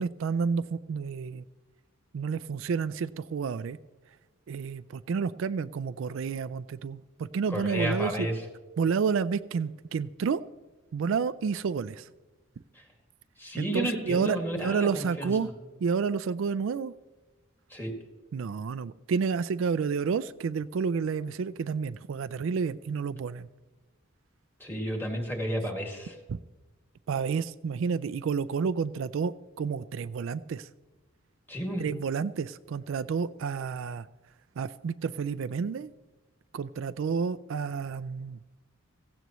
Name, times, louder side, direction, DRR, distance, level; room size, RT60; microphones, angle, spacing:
voice 1, 0.0-1.4 2.1-3.8 4.5-8.3 8.8-10.4 10.9-12.1 13.6-15.5 15.8-16.9 18.3-23.5 26.3-26.4 27.1-30.7 31.8-34.1 34.6-35.9 36.5-38.4, right 5 dB, 65° right, 14 dB, 0.3 m, -30 dB
voice 2, 7.5-8.3 13.4-15.3 17.7-17.9 24.6-26.1 31.5-31.9, equal, 10° left, 1 dB, 2.1 m, -32 dB
16.0 x 16.0 x 3.1 m, 1.2 s
head